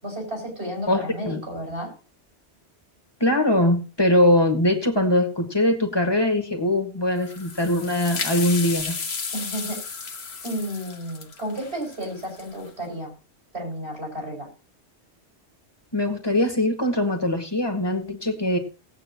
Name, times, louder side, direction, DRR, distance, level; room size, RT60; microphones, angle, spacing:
voice 1, 0.0-1.9 9.3-9.8 10.4-13.1 13.5-14.5, equal, 65° right, 1 dB, 6.5 m, -32 dB
voice 2, 0.9-1.4 3.2-9.0 15.9-18.6, left 1 dB, 20° left, 3 dB, 2.1 m, -22 dB
sound 1, 7.2-12.7, left 5 dB, 65° left, 1.5 m, -33 dB
19.5 x 8.6 x 3.0 m, 0.32 s
omnidirectional pair, 1.2 m